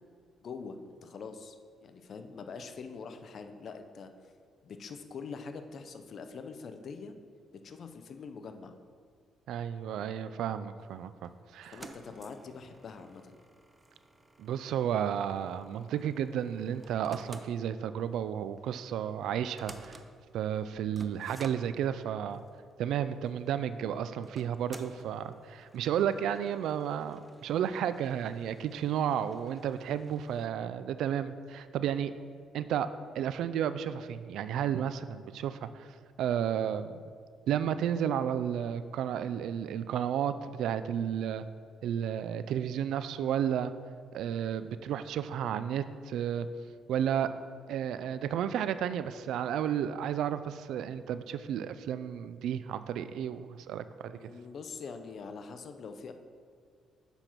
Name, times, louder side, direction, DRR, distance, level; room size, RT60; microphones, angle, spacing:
voice 1, 0.4-4.1 4.6-7.1 7.6-8.7 11.7-13.4 54.1-56.1, left 5 dB, 55° left, 8 dB, 0.6 m, -44 dB
voice 2, 9.5-11.8 14.4-20.0 20.3-22.4 22.8-32.1 32.5-32.9 33.2-35.9 36.2-36.9 37.5-41.4 41.8-43.7 44.1-46.5 46.9-47.3 47.7-54.2, right 9 dB, 80° right, 12 dB, 0.3 m, -32 dB
sound 1, 10.8-30.5, right 2 dB, 20° right, 0.6 m, -54 dB
6.9 x 5.7 x 4.5 m, 2.1 s
cardioid pair, 90°, 0 cm